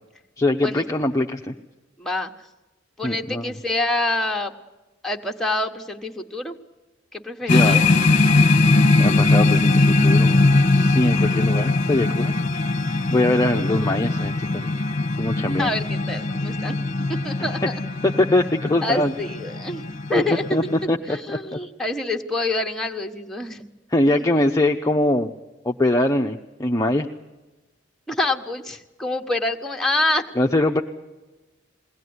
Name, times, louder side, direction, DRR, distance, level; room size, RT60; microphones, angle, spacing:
voice 1, 0.4-1.5 3.0-3.4 7.5-7.8 9.0-12.3 13.1-14.7 15.2-15.7 18.0-19.1 20.5-20.6 20.9-21.2 21.5-21.6 23.9-25.3 25.6-27.1 30.4-30.8, left 1 dB, 15° left, 1 dB, 0.7 m, -22 dB
voice 2, 2.0-2.3 3.0-4.5 5.0-6.6 7.1-7.9 15.6-16.7 17.2-17.7 18.8-19.8 20.1-20.7 21.1-23.7 28.1-30.2, left 2 dB, ahead, 3 dB, 1.2 m, -26 dB
sound 1, 7.5-20.8, left 2 dB, 40° left, 1.0 m, -20 dB
21.5 x 17.5 x 9.5 m, 1.1 s
head